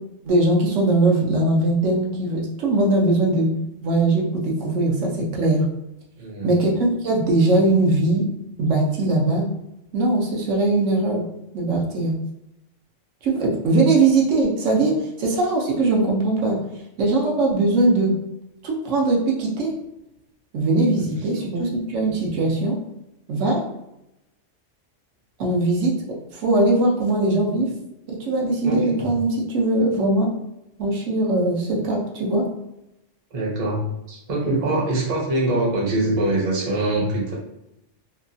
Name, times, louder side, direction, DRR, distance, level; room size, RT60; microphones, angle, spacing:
voice 1, 0.2-3.5 3.8-5.7 6.4-8.2 8.6-9.5 9.9-11.3 11.5-12.1 13.2-16.6 17.0-18.1 18.6-19.7 20.5-22.8 23.3-23.6 25.4-25.9 26.3-27.7 28.1-30.3 30.8-32.4, right 2 dB, 80° right, -2 dB, 1.0 m, -20 dB
voice 2, 6.2-6.6 21.0-21.1 21.4-21.7 28.6-29.1 33.3-37.3, right 2 dB, 35° right, -3 dB, 0.7 m, -24 dB
2.8 x 2.3 x 2.6 m, 0.86 s
omnidirectional pair, 1.3 m